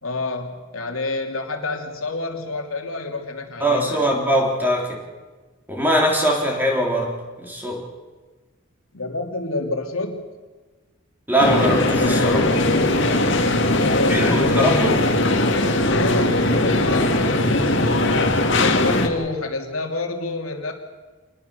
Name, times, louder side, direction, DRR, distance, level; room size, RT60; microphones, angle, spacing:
voice 1, 0.0-4.1 8.9-10.3 13.8-14.9 15.9-17.8 18.6-20.7, left 2 dB, 75° left, 3 dB, 2.9 m, -28 dB
voice 2, 3.6-5.0 5.7-7.8 11.3-12.5 14.1-15.0, equal, 10° right, 0 dB, 3.6 m, -21 dB
sound 1, 11.4-19.1, left 2 dB, 55° left, 2.4 m, -19 dB
26.0 x 20.0 x 6.8 m, 1.3 s
head